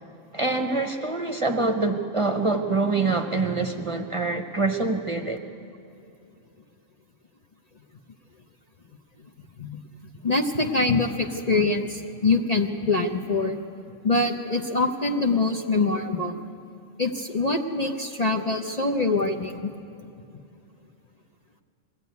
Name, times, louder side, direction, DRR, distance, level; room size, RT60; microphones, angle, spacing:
voice 1, 0.3-5.4, right 3 dB, 25° right, 4 dB, 0.9 m, -25 dB
voice 2, 10.2-13.6 14.0-16.4 17.0-19.7, left 3 dB, 35° left, 2 dB, 0.8 m, -24 dB
21.5 x 15.5 x 9.5 m, 2.6 s
omnidirectional pair, 1.4 m